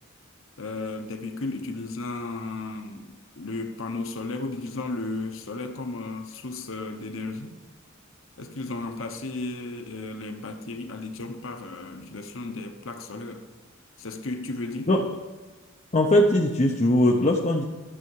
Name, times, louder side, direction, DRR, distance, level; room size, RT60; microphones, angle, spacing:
voice 1, 0.6-7.6 8.4-13.4 14.0-15.0, left 3 dB, 65° left, 5 dB, 1.0 m, -34 dB
voice 2, 15.9-17.6, left 1 dB, 35° left, 0 dB, 0.8 m, -20 dB
12.5 x 7.0 x 4.8 m, 1.3 s
head